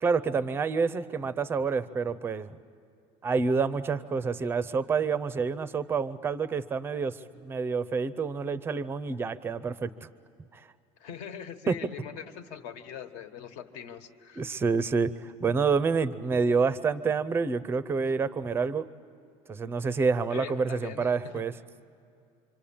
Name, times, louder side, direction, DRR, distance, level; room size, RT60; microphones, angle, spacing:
voice 1, 0.0-2.6 3.2-10.1 10.5-10.6 11.7-11.8 14.4-18.9 19.5-21.5, right 5 dB, 15° right, 14 dB, 0.6 m, -28 dB
voice 2, 11.0-14.5 20.3-21.4, left 8 dB, 60° left, 8 dB, 1.5 m, -42 dB
26.5 x 25.5 x 8.7 m, 2.5 s
cardioid pair, 175°, 14 cm